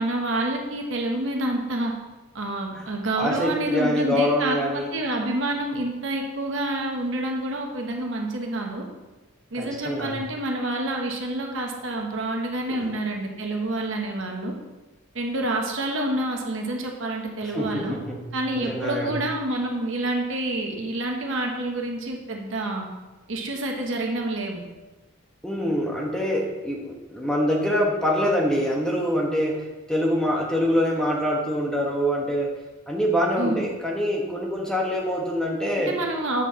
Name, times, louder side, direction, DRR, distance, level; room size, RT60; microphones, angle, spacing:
voice 1, 0.0-1.9 2.3-8.9 9.5-14.6 15.1-18.0 18.3-22.9 23.3-24.6 33.4-33.6 35.9-36.5, right 1 dB, 60° right, 1 dB, 1.1 m, -28 dB
voice 2, 3.2-4.9 9.6-10.2 17.5-18.3 18.5-19.1 25.4-32.5 32.9-35.9, equal, 5° left, -2 dB, 1.0 m, -25 dB
7.8 x 4.6 x 5.6 m, 1.2 s
head